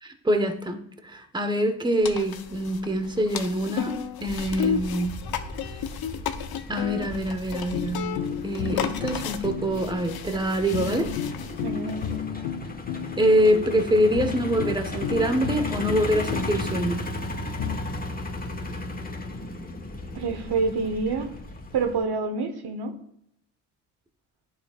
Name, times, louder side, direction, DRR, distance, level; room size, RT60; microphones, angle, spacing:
voice 1, 0.0-0.8 1.0-5.2 6.7-11.1 13.2-17.0, equal, 10° right, 7 dB, 1.2 m, -25 dB
sound 1, 2.0-12.2, left 8 dB, 50° left, 1.0 m, -34 dB
Truck, 4.3-22.0, left 1 dB, 20° left, 1.5 m, -36 dB
sound 2, 7.7-17.8, left 9 dB, 80° left, 0.8 m, -34 dB
voice 2, 11.6-12.2 20.1-21.3 21.7-23.0, right 4 dB, 50° right, 7 dB, 1.2 m, -27 dB
11.0 x 6.8 x 2.5 m, 0.74 s
hypercardioid pair, 50°, 49 cm